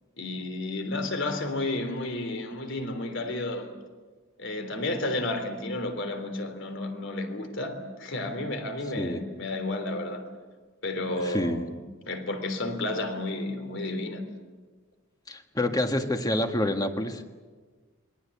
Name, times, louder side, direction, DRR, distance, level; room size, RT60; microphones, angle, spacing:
voice 1, 0.2-3.7 4.4-10.2 10.8-11.6 12.0-14.2, left 2 dB, 60° left, 3.4 m, -32 dB
voice 2, 11.2-11.6 15.3-17.2, left 1 dB, 20° left, 1.7 m, -27 dB
27.5 x 23.0 x 8.5 m
head